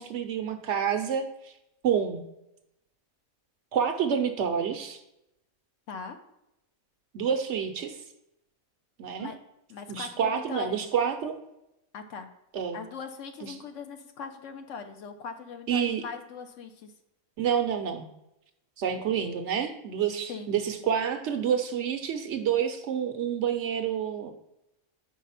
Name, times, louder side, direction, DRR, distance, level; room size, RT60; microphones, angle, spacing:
voice 1, 0.0-1.5 1.8-2.2 3.7-5.0 7.1-8.0 9.0-9.3 9.9-11.4 12.5-12.8 13.4-13.5 15.7-16.0 17.4-18.1 18.8-24.3, right 8 dB, 65° right, 6 dB, 0.8 m, -28 dB
voice 2, 9.7-10.8 11.9-12.3 12.7-16.9 20.3-20.5, left 6 dB, 65° left, 6 dB, 1.0 m, -40 dB
5.0 x 4.6 x 5.6 m, 0.86 s
omnidirectional pair, 1.4 m